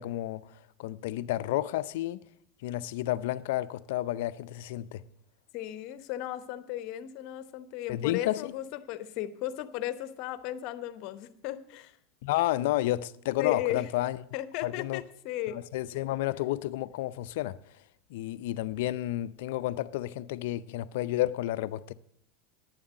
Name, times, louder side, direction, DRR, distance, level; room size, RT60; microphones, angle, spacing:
voice 1, 0.0-2.2 2.6-5.0 7.9-8.5 12.2-14.2 14.6-15.0 15.5-17.6 18.1-21.9, left 15 dB, 75° left, 0.5 m, -31 dB
voice 2, 5.5-12.0 13.4-13.9 14.3-15.6, left 13 dB, 60° left, 0.9 m, -35 dB
9.7 x 7.2 x 9.0 m
supercardioid pair, 110°, 0 cm